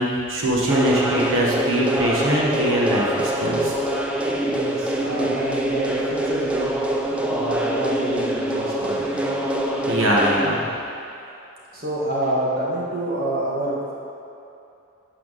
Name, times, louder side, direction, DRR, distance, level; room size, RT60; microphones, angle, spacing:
voice 1, 0.0-3.7 9.9-10.6, right 1 dB, 75° right, -4 dB, 1.5 m, -22 dB
sound 1, 0.7-10.5, right 1 dB, 5° right, 0.5 m, -24 dB
voice 2, 4.5-6.7 7.2-9.3 11.7-13.9, right 1 dB, 45° right, -6 dB, 1.8 m, -27 dB
11.5 x 5.8 x 4.2 m, 2.7 s
head